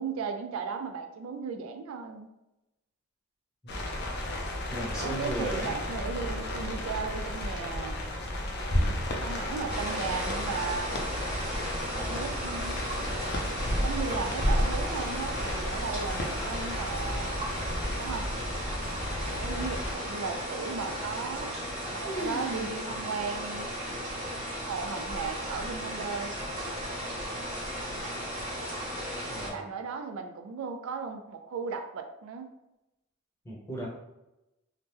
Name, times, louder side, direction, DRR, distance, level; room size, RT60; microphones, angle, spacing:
voice 1, 0.0-2.3 5.0-7.9 9.2-11.1 12.0-12.8 13.8-17.4 18.0-18.3 19.2-21.5 21.9-23.8 24.7-26.3 29.5-32.5, right 5 dB, 70° right, 6 dB, 0.3 m, -36 dB
sound 1, 3.7-20.0, left 1 dB, 55° left, 0.5 m, -34 dB
voice 2, 4.7-5.7 29.2-29.6 33.4-33.9, right 1 dB, 15° left, -4 dB, 0.8 m, -36 dB
sound 2, 9.7-29.5, equal, 30° right, 1.1 m, -34 dB
sound 3, 21.3-21.8 22.0-22.8 23.1-23.2 23.9-24.0 24.7-25.1, right 1 dB, 10° right, 1.0 m, -37 dB
2.8 x 2.1 x 3.3 m, 0.93 s
head